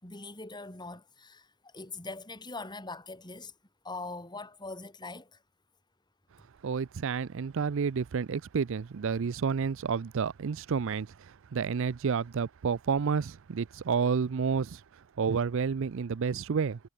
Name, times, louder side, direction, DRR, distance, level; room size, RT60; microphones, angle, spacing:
voice 1, 0.0-3.5 3.8-5.4, left 3 dB, 20° left, 4.7 m, -42 dB
voice 2, 6.6-14.8 15.2-16.8, right 6 dB, 60° right, 0.4 m, -30 dB
head